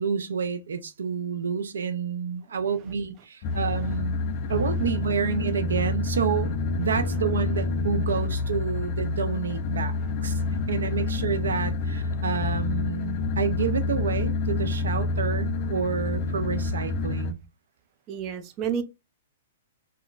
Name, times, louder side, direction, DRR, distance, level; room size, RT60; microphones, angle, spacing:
voice 1, 0.0-4.2 4.5-6.5 6.8-10.4 10.7-17.4, right 6 dB, 85° right, 0.4 m, -29 dB
sound 1, 3.4-17.3, left 3 dB, 50° left, 0.4 m, -28 dB
voice 2, 18.1-18.8, right 8 dB, 35° right, 0.6 m, -31 dB
3.7 x 2.1 x 2.4 m
hypercardioid pair, 125°, 0 cm